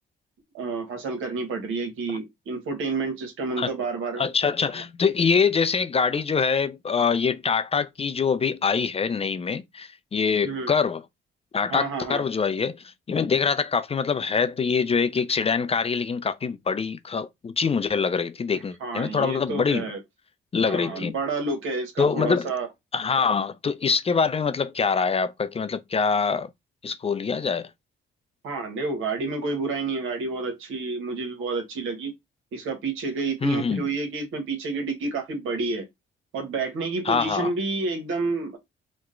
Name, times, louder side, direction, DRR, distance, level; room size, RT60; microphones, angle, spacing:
voice 1, 0.5-4.2 10.4-10.7 11.7-12.2 18.5-20.0 20.6-22.7 28.4-32.1 32.5-35.9 36.3-38.6, right 3 dB, 80° right, 1.1 m, -29 dB
voice 2, 4.2-11.0 11.5-19.8 20.5-21.1 22.0-22.5 22.9-26.5 26.8-27.7 33.4-33.8 37.1-37.5, left 5 dB, 30° left, 0.4 m, -24 dB
3.0 x 2.1 x 3.7 m
supercardioid pair, 65°, 20 cm